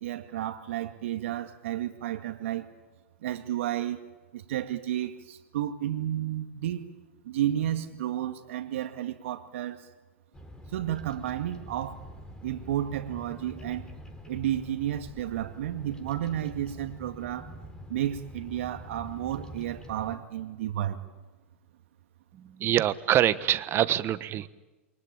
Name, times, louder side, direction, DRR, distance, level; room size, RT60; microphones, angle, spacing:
voice 1, 0.0-2.7 3.2-4.1 4.3-6.9 7.2-9.9 10.7-12.0 12.4-13.9 14.3-17.5 17.9-21.0, right 12 dB, 65° right, 6 dB, 2.2 m, -32 dB
Bird vocalization bird call bird song, 10.3-20.2, equal, 10° left, 3.8 m, -45 dB
voice 2, 22.3-24.5, right 12 dB, 35° right, 14 dB, 1.3 m, -25 dB
28.5 x 23.5 x 8.8 m, 1.2 s
hypercardioid pair, 110°, 7 cm